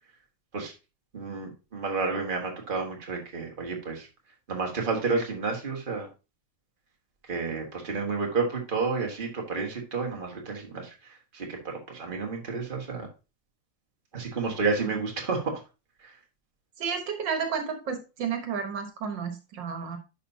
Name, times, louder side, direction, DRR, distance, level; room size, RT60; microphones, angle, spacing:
voice 1, 1.1-4.1 4.5-6.1 7.3-13.1 14.1-15.6 16.0-16.1, right 4 dB, 30° right, 1 dB, 1.7 m, -31 dB
voice 2, 16.8-20.0, right 6 dB, 80° right, 6 dB, 2.0 m, -32 dB
10.5 x 5.6 x 2.8 m, 0.29 s
omnidirectional pair, 2.0 m